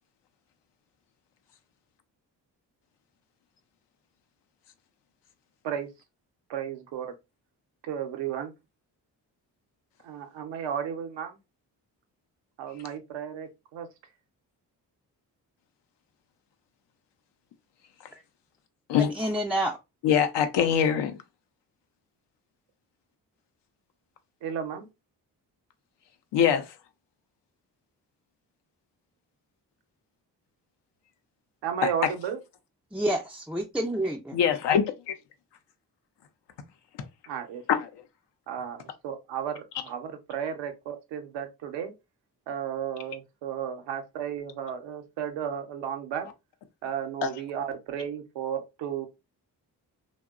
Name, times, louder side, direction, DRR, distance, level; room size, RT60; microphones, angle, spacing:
voice 1, 6.5-7.2 7.8-8.5 10.0-11.4 12.6-13.9 24.4-24.9 31.6-32.4 37.3-37.6 38.5-41.9 42.5-46.3 46.8-49.1, right 8 dB, 80° right, 0.7 m, -34 dB
voice 2, 19.0-19.8 32.9-34.4, right 1 dB, 5° right, 0.3 m, -28 dB
voice 3, 20.0-21.2 26.3-26.7 34.3-35.1 37.7-37.9 47.2-47.3, left 8 dB, 70° left, 0.6 m, -23 dB
2.8 x 2.1 x 2.3 m
supercardioid pair, 45°, 43 cm